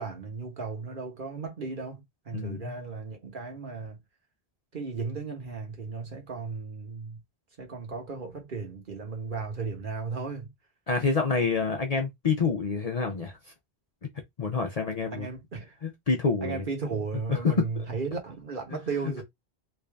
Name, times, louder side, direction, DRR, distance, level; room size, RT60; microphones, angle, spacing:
voice 1, 0.0-4.0 4.7-7.2 7.6-10.5 15.1-15.8 16.4-19.2, right 4 dB, 50° right, 1.3 m, -35 dB
voice 2, 2.3-2.8 10.9-13.4 14.0-14.1 14.4-15.3 15.8-16.7 17.3-17.7, left 4 dB, 45° left, 0.6 m, -27 dB
3.3 x 2.6 x 3.3 m
omnidirectional pair, 1.1 m